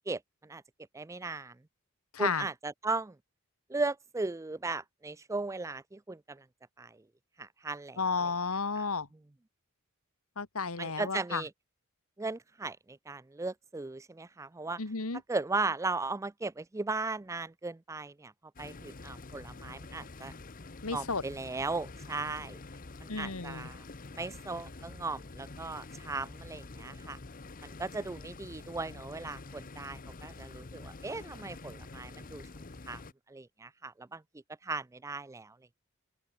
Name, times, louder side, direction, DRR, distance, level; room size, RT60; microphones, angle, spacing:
voice 1, 0.1-0.6 0.9-1.6 2.2-3.2 3.7-6.4 6.8-7.0 7.4-8.2 10.8-11.5 12.2-14.8 15.3-18.3 18.6-20.3 20.9-22.6 23.0-23.8 24.2-27.2 27.6-32.4 32.9-33.0 33.3-34.2 34.6-35.6, right 3 dB, 15° right, 0.4 m, -37 dB
voice 2, 2.1-2.4 8.0-9.1 10.4-11.4 14.8-15.2 20.8-21.2 23.1-23.7, left 4 dB, 70° left, 1.5 m, -32 dB
sound 1, 18.6-33.1, left 3 dB, 40° left, 0.9 m, -47 dB
open air
head